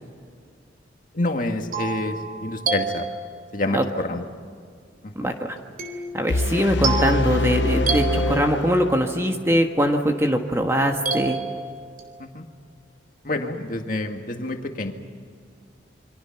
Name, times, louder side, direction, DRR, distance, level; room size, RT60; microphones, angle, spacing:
voice 1, 1.1-3.1 3.5-4.2 5.0-5.3 12.2-12.5 13.2-14.9, left 2 dB, 45° left, 4 dB, 2.0 m, -28 dB
sound 1, 1.2-3.7 5.8-9.0 11.1-12.2, right 4 dB, 45° right, 3.8 m, -30 dB
voice 2, 5.1-5.6 6.1-11.4, equal, 15° right, 3 dB, 1.5 m, -22 dB
sound 2, 6.3-9.3, left 2 dB, 75° left, 0.8 m, -24 dB
28.5 x 25.0 x 5.9 m, 2.1 s
head